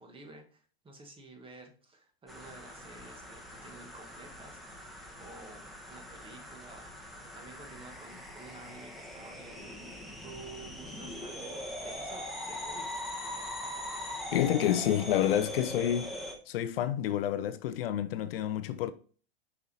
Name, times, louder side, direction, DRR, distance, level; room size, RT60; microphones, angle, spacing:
voice 1, 0.0-4.9 5.2-6.9 7.3-9.9 10.2-12.9, right 3 dB, 15° right, 1.8 m, -51 dB
sound 1, 2.3-16.3, left 1 dB, ahead, 1.6 m, -42 dB
voice 2, 14.3-16.1 16.5-18.9, left 11 dB, 65° left, 0.7 m, -29 dB
6.4 x 5.6 x 4.2 m
hypercardioid pair, 115°, 31 cm